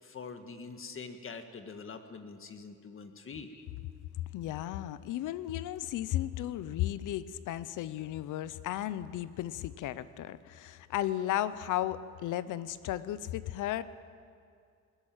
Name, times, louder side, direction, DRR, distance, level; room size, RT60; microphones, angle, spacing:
voice 1, 0.0-3.5, left 5 dB, 45° left, 7 dB, 1.8 m, -44 dB
voice 2, 4.3-13.8, left 13 dB, 85° left, 16 dB, 0.8 m, -34 dB
21.0 x 14.0 x 9.0 m, 2.3 s
cardioid pair, 90°, 30 cm